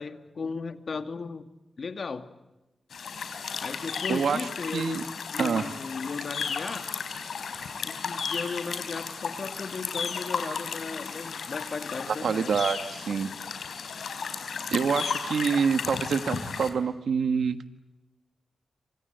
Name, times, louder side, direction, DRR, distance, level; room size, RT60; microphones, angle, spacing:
voice 1, 0.0-1.5 1.8-2.3 3.6-5.1 5.3-6.9 7.8-12.6, left 4 dB, 60° left, 8 dB, 2.3 m, -36 dB
sound 1, 2.9-16.7, left 6 dB, 80° left, 4.1 m, -34 dB
voice 2, 4.1-5.0 5.4-5.7 12.2-13.3 14.7-17.6, right 6 dB, 85° right, 10 dB, 1.4 m, -26 dB
28.5 x 26.0 x 8.1 m, 1.0 s
cardioid pair, 85°, 0 cm